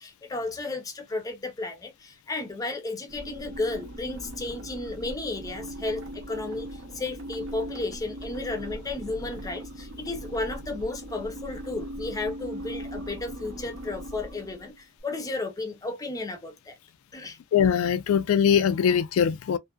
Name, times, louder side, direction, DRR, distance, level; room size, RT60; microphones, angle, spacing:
voice 1, 0.0-16.8 17.1-17.4, left 2 dB, 15° left, 0.5 m, -33 dB
sound 1, 3.1-14.8, right 1 dB, 70° right, 0.8 m, -39 dB
voice 2, 17.5-19.6, left 8 dB, 80° left, 0.3 m, -22 dB
2.5 x 2.4 x 2.3 m
head